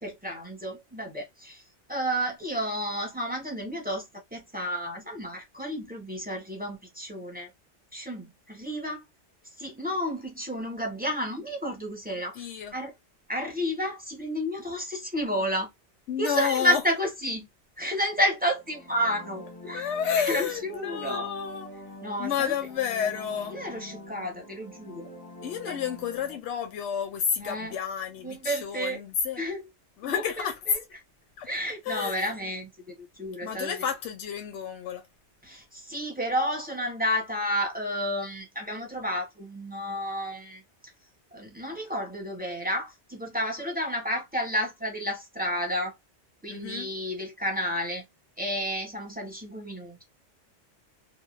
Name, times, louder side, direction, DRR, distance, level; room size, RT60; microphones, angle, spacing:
voice 1, 0.0-1.6 1.9-4.0 4.3-7.5 7.9-9.0 9.6-12.9 13.3-15.7 16.2-17.5 17.8-19.9 20.3-21.3 22.0-22.5 23.5-25.1 25.7-25.8 27.4-27.7 28.2-29.0 29.4-29.6 30.0-30.5 31.5-33.7 35.4-40.6 41.3-45.9 46.4-48.0 48.4-50.0, equal, 10° right, 0.8 m, -31 dB
voice 2, 12.3-12.7 16.1-16.8 19.7-21.7 22.2-23.6 25.4-29.4 30.0-30.8 31.4-31.5 31.8-32.2 33.4-35.0 46.5-46.9, left 7 dB, 80° left, 0.9 m, -30 dB
sound 1, 18.5-26.4, left 1 dB, 20° left, 0.7 m, -45 dB
2.5 x 2.0 x 3.1 m
omnidirectional pair, 1.2 m